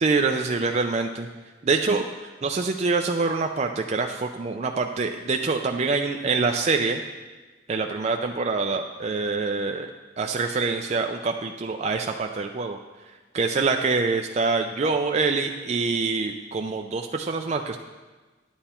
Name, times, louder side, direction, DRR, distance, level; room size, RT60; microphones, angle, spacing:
voice 1, 0.0-1.3 1.6-7.0 7.7-9.9 10.2-12.8 13.3-17.8, right 4 dB, 35° right, 4 dB, 0.4 m, -25 dB
10.5 x 8.9 x 4.3 m, 1.3 s
head